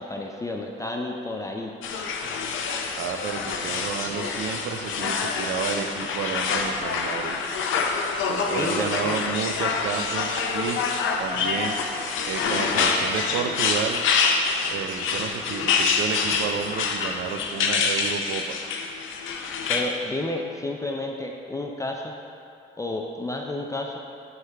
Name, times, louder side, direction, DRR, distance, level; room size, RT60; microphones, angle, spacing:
voice 1, 0.0-1.7 8.4-9.2 19.7-22.1 22.8-24.0, left 2 dB, 15° left, 1 dB, 0.4 m, -31 dB
sound 1, 1.8-19.8, left 5 dB, 80° left, 0.6 m, -26 dB
voice 2, 3.0-7.4 8.3-10.8 11.2-11.8 12.2-14.0 14.6-18.5, right 7 dB, 75° right, 7 dB, 0.5 m, -31 dB
7.9 x 3.2 x 4.6 m, 2.7 s
cardioid pair, 90°, 20 cm